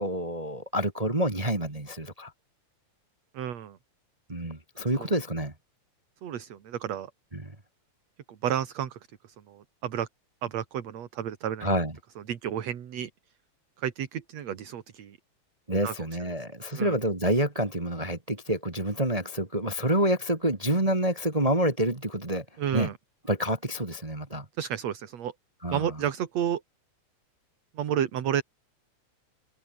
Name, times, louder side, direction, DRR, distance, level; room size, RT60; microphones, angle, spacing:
voice 1, 0.0-2.3 4.3-5.5 7.3-7.5 11.6-11.9 15.7-22.4 22.7-22.9 23.3-24.4 25.6-25.9, right 1 dB, 15° right, 1.4 m, -28 dB
voice 2, 3.3-3.8 5.0-5.1 6.2-7.1 8.4-9.0 9.5-10.1 10.4-11.7 12.3-13.1 13.8-15.2 15.8-15.9 16.7-16.9 22.6-22.9 24.6-25.3 25.7-26.6 27.8-28.4, right 9 dB, 65° right, 2.9 m, -31 dB
omnidirectional pair, 3.4 m